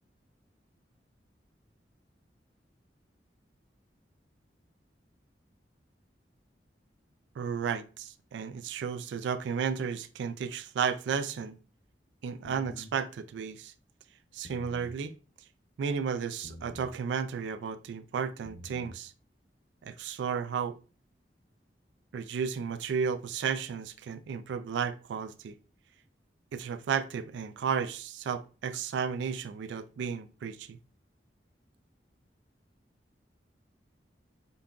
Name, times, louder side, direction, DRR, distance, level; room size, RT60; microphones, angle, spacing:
voice 1, 7.4-11.6 12.2-13.7 14.3-15.1 15.8-19.1 19.8-20.8 22.1-25.5 26.5-30.8, right 6 dB, 90° right, 0.3 m, -33 dB
sound 1, 12.4-12.9 14.3-15.0 16.4-17.0 18.3-19.0, left 1 dB, 85° left, 0.7 m, -47 dB
5.2 x 2.3 x 2.4 m
head